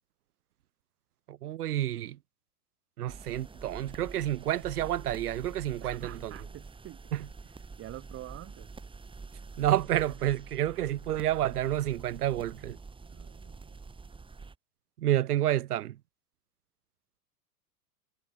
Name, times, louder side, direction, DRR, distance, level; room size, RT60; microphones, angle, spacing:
voice 1, 1.3-2.2 3.0-6.3 7.1-7.3 9.6-12.8 15.0-16.0, right 13 dB, 70° right, 1.1 m, -29 dB
sound 1, 3.1-14.5, right 4 dB, 10° right, 2.1 m, -46 dB
voice 2, 5.8-7.0 7.4-8.7 13.0-13.8, right 15 dB, 30° right, 0.9 m, -47 dB
hypercardioid pair, 95°, 47 cm